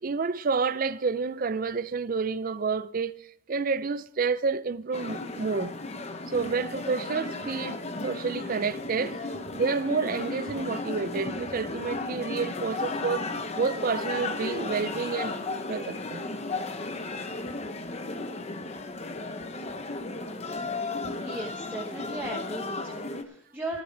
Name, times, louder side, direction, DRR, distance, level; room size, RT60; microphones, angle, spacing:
voice 1, 0.0-3.2 3.5-5.7 6.3-9.2 9.5-13.3 13.6-16.2, right 5 dB, 40° right, 0.4 m, -29 dB
sound 1, 4.9-23.2, left 3 dB, 30° left, 0.8 m, -34 dB
voice 2, 21.2-23.8, right 1 dB, 10° right, 1.2 m, -37 dB
13.0 x 11.5 x 4.6 m
head